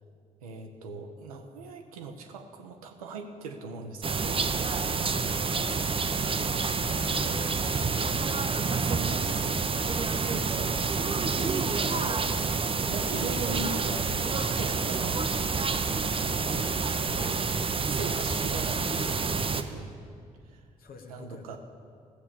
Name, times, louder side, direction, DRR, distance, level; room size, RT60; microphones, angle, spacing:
voice 1, 0.4-4.5 5.3-5.7 6.1-6.5 8.8-9.7 10.3-12.6 12.9-15.2 16.2-16.6 16.9-17.5 17.9-19.9 20.5-20.6 21.1-21.6, right 3 dB, 80° right, 4 dB, 1.0 m, -40 dB
sound 1, 4.0-19.6, right 4 dB, 30° right, 0.8 m, -28 dB
voice 2, 6.8-7.9 16.5-16.7 20.8-21.6, left 2 dB, 55° left, 4 dB, 1.5 m, -44 dB
16.0 x 7.2 x 6.9 m, 2.3 s
figure-of-eight pair, 40°, 18 cm